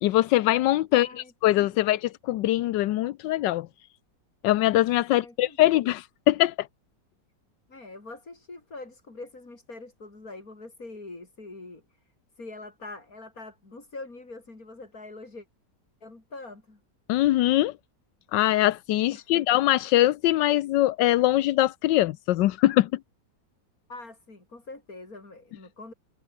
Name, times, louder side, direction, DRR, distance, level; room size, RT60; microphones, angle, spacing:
voice 1, 0.0-3.7 4.4-6.7 17.1-17.7 18.3-22.9, left 15 dB, 85° left, 1.3 m, -22 dB
voice 2, 0.9-2.0 5.1-5.8 7.7-11.8 12.4-15.5 16.0-16.8 19.1-19.4 23.9-25.9, left 2 dB, 55° left, 5.4 m, -44 dB
omnidirectional pair, 1.9 m